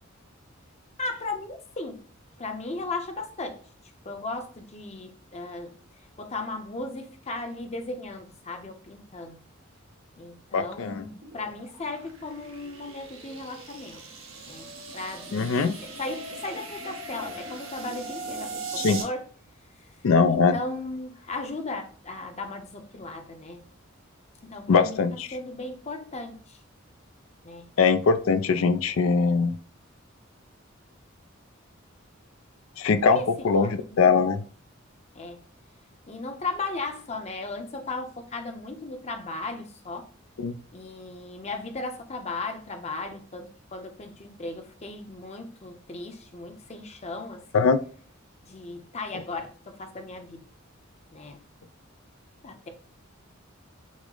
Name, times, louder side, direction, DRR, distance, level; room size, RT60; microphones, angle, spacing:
voice 1, 1.0-2.0 2.4-3.6 4.0-5.8 6.2-9.4 10.2-11.1 11.3-14.0 14.4-19.3 20.3-23.7 24.4-25.0 25.3-26.6 27.4-27.7 33.1-34.0 35.1-35.4 36.1-40.1 40.7-47.7 48.4-50.5 51.1-51.4 52.4-52.7, left 2 dB, 30° left, 0.7 m, -36 dB
voice 2, 10.5-11.0 15.3-15.7 18.8-19.0 20.0-20.6 24.7-25.3 27.8-29.5 32.8-33.2 33.4-34.4 40.4-40.6 47.5-47.8, left 5 dB, 85° left, 0.4 m, -21 dB
sound 1, 11.0-19.0, right 3 dB, 85° right, 1.2 m, -39 dB
6.2 x 2.1 x 3.8 m
head